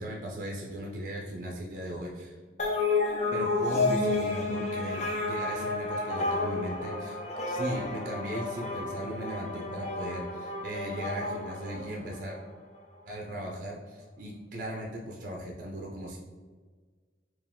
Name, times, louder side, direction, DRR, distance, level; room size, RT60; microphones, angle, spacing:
voice 1, 0.0-2.4 3.3-7.2 7.5-12.4 13.1-16.2, right 1 dB, 50° right, -1 dB, 0.5 m, -37 dB
sound 1, 2.6-12.4, left 3 dB, 40° left, 0.5 m, -31 dB
4.4 x 2.4 x 3.6 m, 1.5 s
head